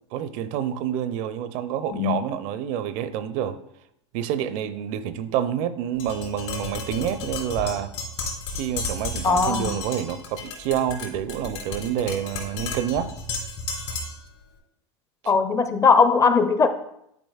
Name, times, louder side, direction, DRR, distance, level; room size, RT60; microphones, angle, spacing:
voice 1, 0.1-3.6 4.1-7.9 8.5-13.1 15.2-15.3, right 10 dB, 55° right, 0.5 m, -28 dB
Tap, 6.0-14.3, left 3 dB, 60° left, 2.9 m, -33 dB
voice 2, 9.2-9.6 15.3-16.7, left 5 dB, 20° left, 0.5 m, -19 dB
10.5 x 4.9 x 2.4 m
hypercardioid pair, 100°, 16 cm